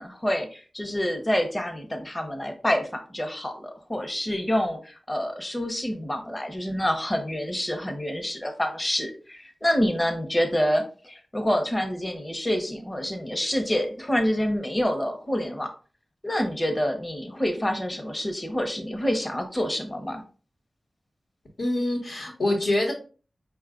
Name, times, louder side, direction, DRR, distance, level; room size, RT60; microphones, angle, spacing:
voice 1, 0.0-15.7 16.2-20.2, equal, 20° left, 4 dB, 0.8 m, -27 dB
voice 2, 21.6-22.9, left 1 dB, 75° left, -1 dB, 1.1 m, -25 dB
5.2 x 2.3 x 3.7 m, 0.38 s
wide cardioid pair, 100°, 0 cm